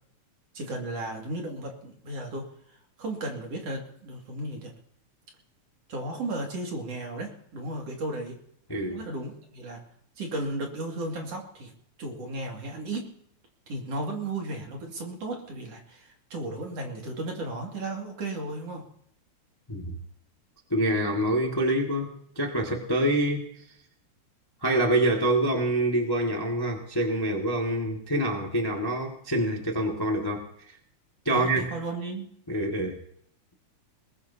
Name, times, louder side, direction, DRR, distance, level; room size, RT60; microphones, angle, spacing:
voice 1, 0.6-2.5 3.0-4.7 5.9-8.4 8.9-9.8 10.2-11.7 12.0-13.1 13.7-18.9 31.3-32.4, right 2 dB, 55° right, 0 dB, 3.4 m, -34 dB
voice 2, 8.7-9.0 19.7-19.9 20.7-23.5 24.6-30.4 31.2-31.7 32.5-33.0, right 1 dB, 10° left, 1 dB, 1.2 m, -26 dB
21.0 x 20.5 x 2.9 m, 0.68 s
omnidirectional pair, 3.5 m